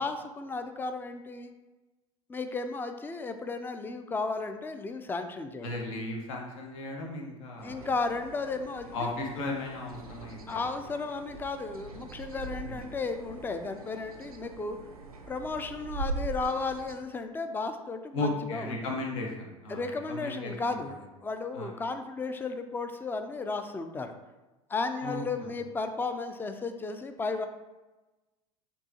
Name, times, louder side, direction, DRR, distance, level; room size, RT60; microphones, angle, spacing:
voice 1, 0.0-1.5 2.3-5.7 7.6-9.1 10.5-14.8 15.3-18.8 19.7-24.1 24.7-27.5, left 3 dB, 10° left, 8 dB, 0.4 m, -34 dB
voice 2, 5.6-7.9 8.9-10.7 12.6-12.8 18.1-20.8 21.5-21.7 25.0-25.5, left 2 dB, 65° left, 0 dB, 1.1 m, -36 dB
sound 1, 7.6-17.0, right 3 dB, 85° right, 0.6 m, -42 dB
6.8 x 2.8 x 2.8 m, 1.1 s
hypercardioid pair, 80°, 18 cm